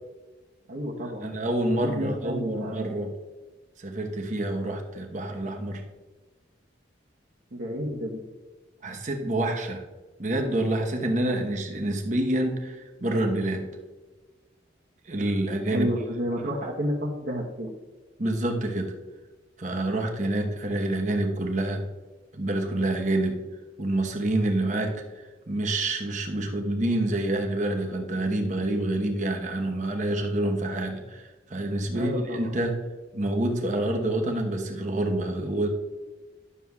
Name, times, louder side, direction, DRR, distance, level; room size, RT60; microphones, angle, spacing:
voice 1, 0.7-1.3 1.8-2.9 7.5-8.2 15.7-17.7 31.9-32.5, equal, 65° right, -6 dB, 1.1 m, -30 dB
voice 2, 1.2-3.1 3.8-5.8 8.8-9.8 10.2-13.7 15.1-15.9 18.2-18.9 19.6-21.8 22.3-23.4 23.8-32.8 33.1-35.7, right 1 dB, 40° right, 3 dB, 1.0 m, -27 dB
11.0 x 7.0 x 2.3 m, 1.2 s
head